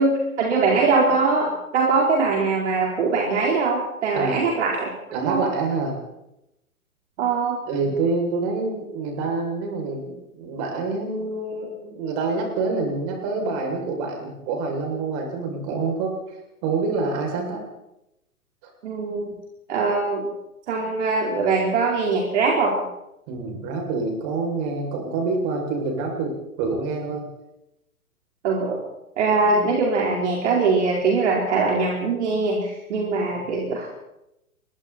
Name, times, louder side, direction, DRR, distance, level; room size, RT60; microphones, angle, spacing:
voice 1, 0.0-5.4 7.2-7.6 18.8-19.3 19.7-20.3 20.7-22.9 28.4-28.8 29.2-33.9, right 4 dB, 50° right, -2 dB, 4.7 m, -22 dB
voice 2, 5.1-5.9 7.7-16.1 16.6-17.6 23.3-27.2, right 3 dB, 35° right, 1 dB, 7.3 m, -26 dB
28.0 x 23.0 x 4.5 m, 0.89 s
figure-of-eight pair, 125°, 44 cm